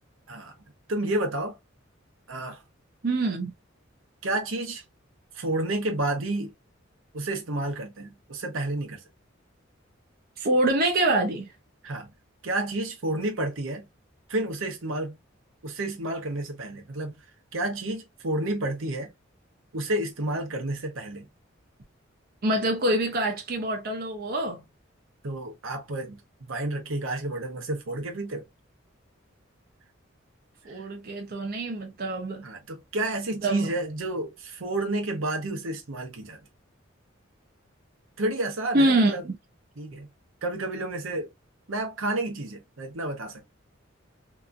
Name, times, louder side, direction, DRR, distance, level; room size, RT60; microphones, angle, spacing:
voice 1, 0.9-1.6 2.3-2.6 4.2-4.8 5.3-6.5 7.1-9.0 11.8-12.1 12.4-13.8 14.3-15.2 15.6-17.2 17.5-19.1 19.7-21.3 25.2-26.2 26.5-28.4 30.7-30.9 32.4-36.4 38.2-39.2 39.8-40.1 40.4-41.3 41.7-43.4, right 2 dB, 80° right, 0.8 m, -30 dB
voice 2, 3.0-3.5 10.4-11.5 22.4-24.6 30.6-32.4 33.4-33.7 38.7-39.3, right 1 dB, 50° right, 0.6 m, -25 dB
2.8 x 2.4 x 2.4 m
head